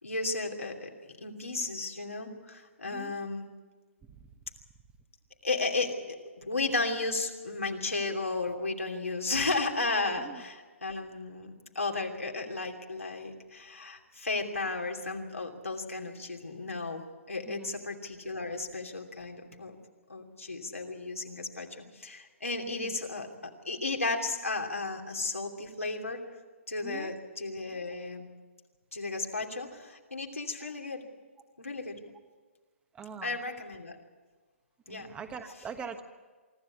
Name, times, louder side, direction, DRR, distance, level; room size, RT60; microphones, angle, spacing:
voice 1, 0.0-3.4 5.4-19.8 20.1-26.2 26.7-28.3 28.9-31.0 31.6-31.9 33.2-34.0 34.9-35.1, left 3 dB, 85° left, 1 dB, 2.9 m, -34 dB
voice 2, 17.5-17.8 22.7-23.0 26.8-27.2 32.9-33.4 34.9-36.0, right 6 dB, 15° right, 8 dB, 1.3 m, -43 dB
24.5 x 13.5 x 8.4 m, 1.4 s
figure-of-eight pair, 130°, 7 cm